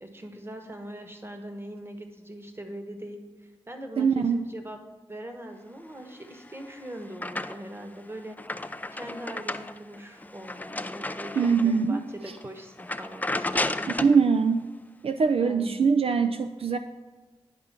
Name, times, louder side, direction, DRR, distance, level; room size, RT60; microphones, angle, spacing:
voice 1, 0.0-4.8 5.1-8.4 8.9-14.3 15.4-15.9, right 1 dB, 20° right, 5 dB, 1.1 m, -41 dB
voice 2, 4.0-4.5 11.4-12.0 14.0-14.7 15.0-16.8, right 5 dB, 65° right, 8 dB, 0.4 m, -22 dB
sound 1, 6.3-7.8 8.2-11.8 12.3-12.4 12.8-14.2, left 2 dB, 15° left, 0.4 m, -33 dB
9.6 x 3.7 x 5.8 m, 1.3 s
cardioid pair, 55°, 11 cm